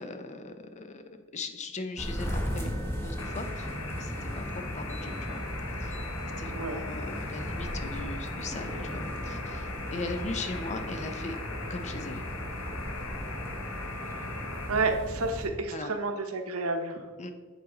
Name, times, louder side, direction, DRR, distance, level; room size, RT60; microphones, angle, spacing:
voice 1, 0.0-5.4 5.8-6.0 6.4-11.4 11.7-12.3 15.7-15.9 17.2-17.3, left 3 dB, 35° left, 8 dB, 0.5 m, -39 dB
sound 1, 2.0-15.5, equal, 10° left, 1.1 m, -36 dB
sound 2, 3.2-14.7, left 3 dB, 70° left, 0.9 m, -40 dB
voice 2, 6.5-6.8 14.7-17.1, right 3 dB, 75° right, 5 dB, 0.8 m, -30 dB
8.3 x 4.2 x 3.8 m, 1.5 s
head